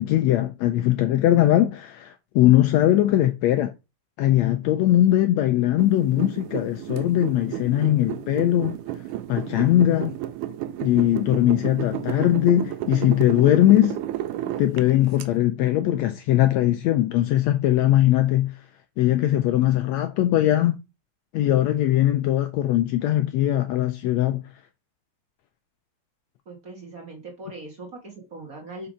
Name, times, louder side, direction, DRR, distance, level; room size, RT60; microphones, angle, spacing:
voice 1, 0.0-3.7 4.2-8.8 9.3-10.1 10.8-14.0 14.6-18.6 19.0-20.8 21.3-24.4, left 13 dB, 90° left, 1.6 m, -20 dB
sound 1, 5.8-15.2, right 13 dB, 80° right, 2.1 m, -32 dB
voice 2, 26.4-28.9, right 2 dB, 50° right, 1.0 m, -40 dB
5.5 x 5.3 x 5.0 m
omnidirectional pair, 3.7 m